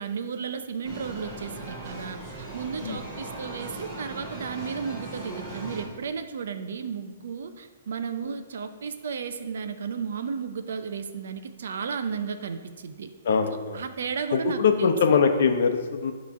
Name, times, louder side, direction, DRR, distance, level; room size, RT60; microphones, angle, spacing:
voice 1, 0.0-13.1 13.7-15.2, right 6 dB, 70° right, 9 dB, 0.6 m, -34 dB
sound 1, 0.8-5.9, right 2 dB, 20° right, 1.5 m, -38 dB
voice 2, 13.2-13.8 14.3-16.1, left 5 dB, 60° left, 6 dB, 0.8 m, -22 dB
9.5 x 3.2 x 5.7 m, 1.4 s
hypercardioid pair, 165°, 0 cm